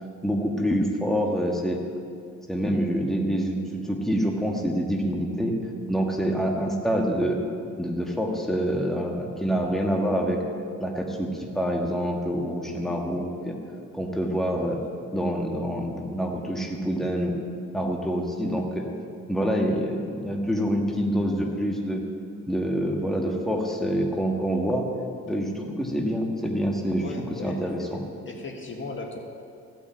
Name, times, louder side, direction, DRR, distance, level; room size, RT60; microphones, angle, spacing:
voice 1, 0.2-1.8 2.5-5.6 5.9-7.4 7.8-10.4 10.8-13.5 13.9-14.8 15.1-17.4 17.7-18.9 19.3-22.0 22.5-24.9 25.3-28.0, equal, ahead, 1 dB, 1.6 m, -26 dB
voice 2, 27.0-29.2, left 3 dB, 40° left, 2 dB, 1.7 m, -37 dB
15.0 x 6.0 x 9.0 m, 2.4 s
cardioid pair, 90°, 30 cm